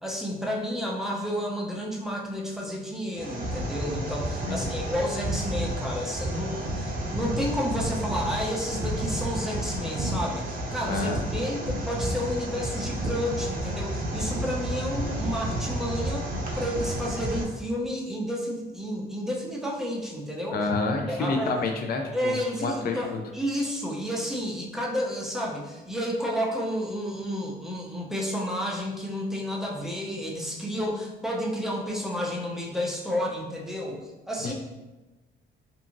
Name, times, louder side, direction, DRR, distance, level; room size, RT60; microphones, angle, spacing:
voice 1, 0.0-16.3 16.5-20.6 21.1-21.5 22.1-34.5, equal, ahead, -3 dB, 0.5 m, -31 dB
sound 1, 3.1-17.4, right 1 dB, 45° right, 0.6 m, -31 dB
voice 2, 10.9-11.2 20.5-23.2 34.4-34.5, left 3 dB, 50° left, 3 dB, 0.4 m, -29 dB
2.7 x 2.5 x 2.5 m, 1.1 s
cardioid pair, 90°, 20 cm